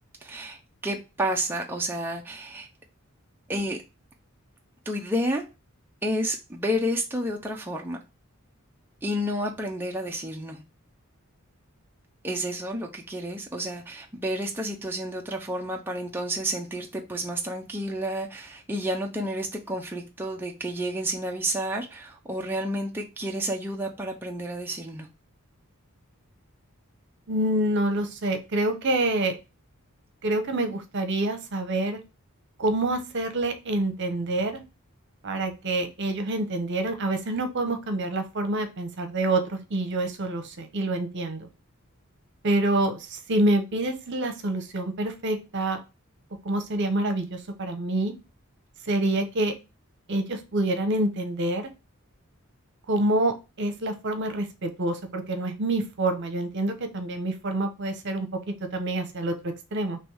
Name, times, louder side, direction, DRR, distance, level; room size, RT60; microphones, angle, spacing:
voice 1, 0.2-2.7 3.5-3.8 4.9-5.4 6.0-8.0 9.0-10.6 12.2-25.1, equal, 10° right, 0.5 m, -30 dB
voice 2, 27.3-29.4 30.2-32.0 32.6-34.6 35.2-41.5 42.4-45.8 46.4-48.1 48.9-49.5 50.1-51.7 52.9-60.0, right 1 dB, 55° right, 0.8 m, -27 dB
3.4 x 3.0 x 4.7 m
head